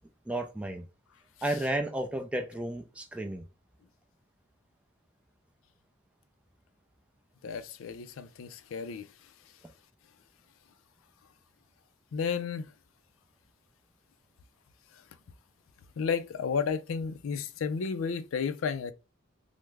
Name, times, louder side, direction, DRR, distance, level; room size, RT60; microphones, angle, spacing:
voice 1, 0.3-0.8 1.4-3.4, right 1 dB, 5° right, 0.4 m, -32 dB
voice 2, 7.4-9.1 12.1-12.7 16.0-18.9, left 6 dB, 85° left, 0.4 m, -32 dB
3.4 x 2.0 x 3.2 m
head